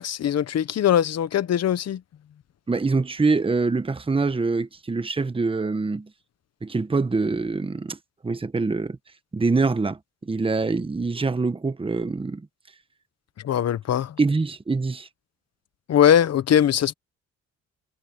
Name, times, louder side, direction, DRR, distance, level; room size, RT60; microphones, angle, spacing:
voice 1, 0.0-2.0 13.4-14.1 15.9-16.9, left 9 dB, 55° left, 1.1 m, -21 dB
voice 2, 2.7-6.1 6.6-8.0 8.2-9.0 9.3-12.4 14.2-15.1, right 3 dB, 20° right, 1.2 m, -24 dB
cardioid pair, 90°, 30 cm